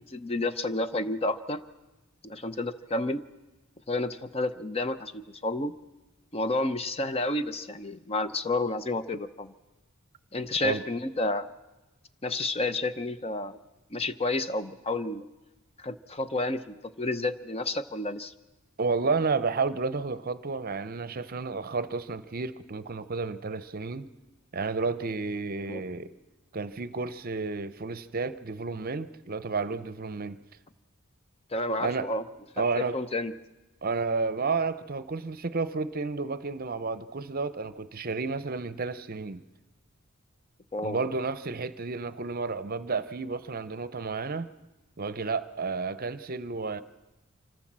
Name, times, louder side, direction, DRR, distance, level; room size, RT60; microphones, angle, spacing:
voice 1, 0.0-1.6 2.2-3.2 3.9-5.7 6.3-9.5 10.3-11.5 12.2-13.6 13.9-15.2 15.8-18.3 25.6-25.8 31.5-32.2 32.6-33.3 40.7-41.0, left 2 dB, 30° left, 0.7 m, -30 dB
voice 2, 18.8-24.1 24.5-26.1 26.5-30.4 31.8-32.1 32.6-33.0 33.8-39.4 40.8-44.5 45.0-46.8, right 4 dB, 45° right, 0.7 m, -31 dB
26.0 x 14.5 x 7.4 m
head